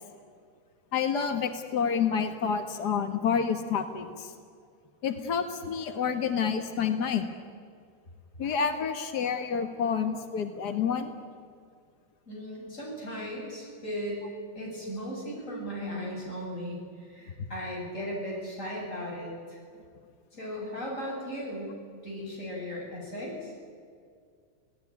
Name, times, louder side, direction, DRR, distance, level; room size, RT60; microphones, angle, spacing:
voice 1, 0.9-4.3 5.0-7.3 8.4-11.1, left 6 dB, 75° left, 7 dB, 0.9 m, -28 dB
voice 2, 12.3-14.2 14.5-19.6 20.4-21.7 22.0-23.5, equal, 20° left, -3 dB, 7.9 m, -37 dB
26.5 x 18.0 x 9.9 m, 2.2 s
omnidirectional pair, 4.2 m